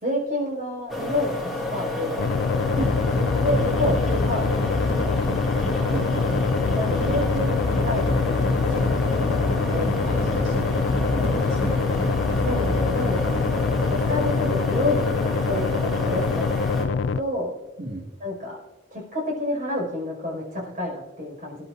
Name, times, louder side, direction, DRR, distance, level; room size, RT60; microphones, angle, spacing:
voice 1, 0.0-1.3 1.7-2.2 3.4-4.5 4.9-5.0 6.7-7.5 7.8-8.8 9.1-10.0 11.2-11.4 12.4-13.6 13.9-15.7 16.0-17.5 18.2-18.6 18.9-21.6, left 1 dB, 40° right, -3 dB, 5.5 m, -29 dB
Computer cooling fan, 0.9-16.8, left 1 dB, ahead, 2.3 m, -30 dB
sound 1, 2.2-17.2, left 5 dB, 70° left, 0.3 m, -25 dB
sound 2, 2.8-14.3, left 1 dB, 25° left, 2.5 m, -30 dB
voice 2, 5.9-6.4 10.0-12.1 17.8-18.1, right 2 dB, 65° right, -3 dB, 1.8 m, -34 dB
24.0 x 11.0 x 2.6 m, 1.1 s
head